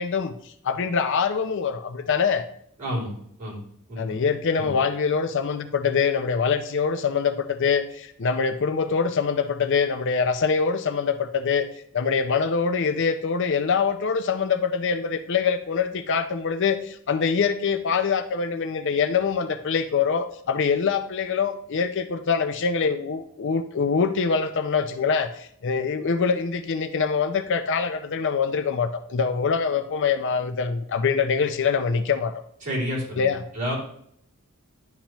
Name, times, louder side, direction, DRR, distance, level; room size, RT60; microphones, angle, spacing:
voice 1, 0.0-2.4 4.0-11.7 11.9-32.3 33.2-33.4, left 5 dB, 55° left, 10 dB, 0.5 m, -24 dB
voice 2, 2.8-3.1 3.4-3.6 3.9-4.2 4.5-4.7 32.6-33.8, equal, 35° right, -6 dB, 3.0 m, -30 dB
10.5 x 5.8 x 3.0 m, 0.68 s
head